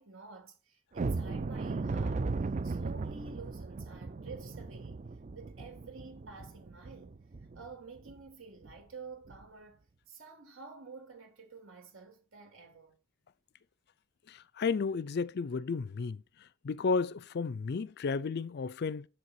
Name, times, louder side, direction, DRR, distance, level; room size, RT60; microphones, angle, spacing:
voice 1, 0.0-2.3 2.6-5.0 5.3-7.2 7.5-13.0, right 4 dB, 65° right, 3.4 m, -50 dB
sound 1, 0.9-7.7 8.1-8.2 8.6-8.8 9.3-9.4, right 3 dB, 35° right, 0.4 m, -37 dB
voice 2, 14.3-16.2 16.6-19.1, left 4 dB, 50° left, 0.4 m, -33 dB
7.9 x 6.7 x 4.6 m
head